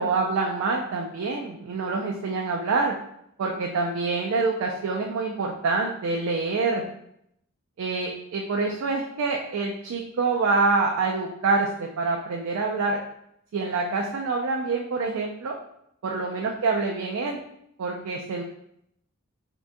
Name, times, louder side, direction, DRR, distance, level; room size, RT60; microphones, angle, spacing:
voice 1, 0.0-3.0 3.4-6.9 7.8-13.0 13.5-15.5 16.0-17.4 17.8-18.4, right 3 dB, 70° right, 0 dB, 0.4 m, -26 dB
3.7 x 2.2 x 2.5 m, 0.76 s
head